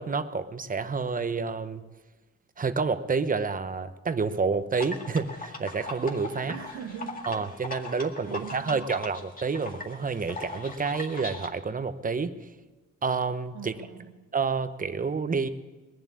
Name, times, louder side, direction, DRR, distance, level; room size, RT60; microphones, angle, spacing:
voice 1, 0.0-1.8 2.6-6.5 7.3-12.3 13.0-13.7 14.3-15.5, right 4 dB, 25° right, 11 dB, 0.9 m, -29 dB
sound 1, 4.8-11.5, left 2 dB, 30° left, 2.1 m, -40 dB
voice 2, 6.3-7.3 7.9-9.0 13.5-14.2, right 7 dB, 80° right, 0 dB, 1.5 m, -42 dB
20.5 x 7.4 x 8.4 m, 1.2 s
cardioid pair, 90°, 30 cm